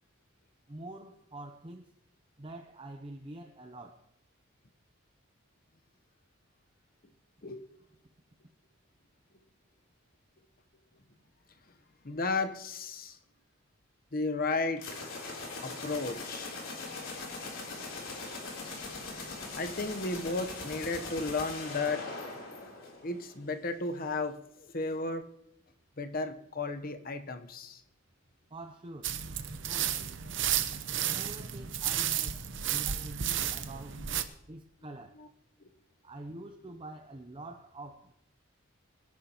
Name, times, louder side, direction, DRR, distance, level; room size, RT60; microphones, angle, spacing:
voice 1, 0.7-1.9 2.4-4.1 28.5-29.1 29.7-30.0 31.1-32.4 32.7-34.0 34.5-35.2 36.0-38.1, right 2 dB, 25° right, 0.6 m, -46 dB
voice 2, 12.0-13.2 14.1-14.8 15.6-16.6 19.5-22.1 23.0-25.3 26.0-27.8 33.4-33.5 35.2-35.3, left 3 dB, 45° left, 0.9 m, -34 dB
sound 1, 14.8-23.4, left 3 dB, 70° left, 3.5 m, -41 dB
sound 2, 29.0-34.2, right 10 dB, 60° right, 0.8 m, -32 dB
24.5 x 10.5 x 3.0 m
head